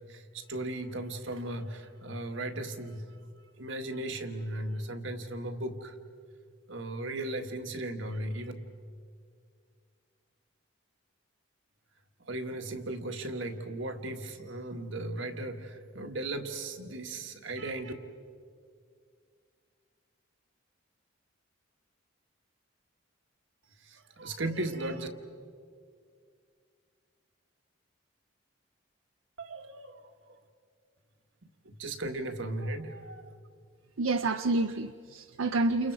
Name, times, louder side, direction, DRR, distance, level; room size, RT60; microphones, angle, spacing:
voice 1, 0.1-3.2 3.6-6.0 6.7-8.5 12.3-17.9 23.8-25.1 29.4-30.0 31.7-33.3, right 1 dB, 70° right, 1.6 m, -36 dB
voice 2, 34.0-35.9, right 2 dB, 85° right, 0.6 m, -28 dB
30.0 x 28.5 x 4.8 m
head